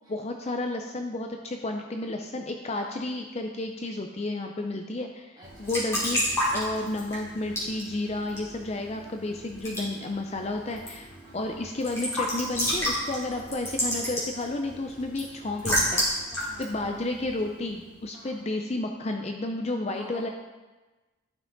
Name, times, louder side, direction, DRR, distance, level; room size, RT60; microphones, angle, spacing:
voice 1, 0.1-6.2 6.5-16.0 16.6-20.3, left 2 dB, 30° left, 3 dB, 0.5 m, -32 dB
Raindrop / Drip / Trickle dribble, 5.4-17.9, equal, 15° left, 3.3 m, -32 dB
voice 2, 5.4-5.7 11.2-11.5 16.2-16.8 18.1-18.5 19.9-20.3, right 1 dB, 20° right, -7 dB, 3.3 m, -48 dB
14.0 x 5.9 x 3.9 m, 1.2 s
head